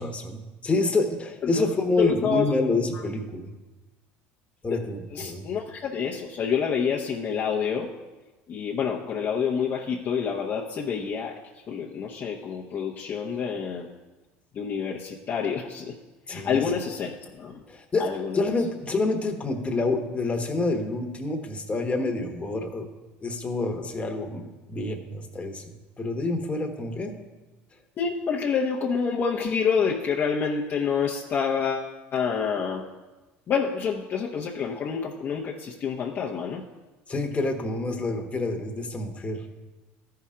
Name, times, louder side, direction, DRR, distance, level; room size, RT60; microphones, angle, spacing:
voice 1, 0.0-3.5 4.6-5.5 16.3-16.6 17.7-18.1 18.3-22.9 23.2-27.2 37.1-39.4, left 2 dB, 25° left, 4 dB, 1.2 m, -28 dB
voice 2, 2.0-2.5 2.9-3.0 4.7-4.8 5.1-7.9 8.5-13.9 14.5-16.0 16.3-17.6 18.0-18.4 28.0-32.8 33.5-36.6, left 6 dB, 45° left, -2 dB, 0.8 m, -28 dB
13.5 x 5.7 x 3.7 m, 1.2 s
supercardioid pair, 95°, 5 cm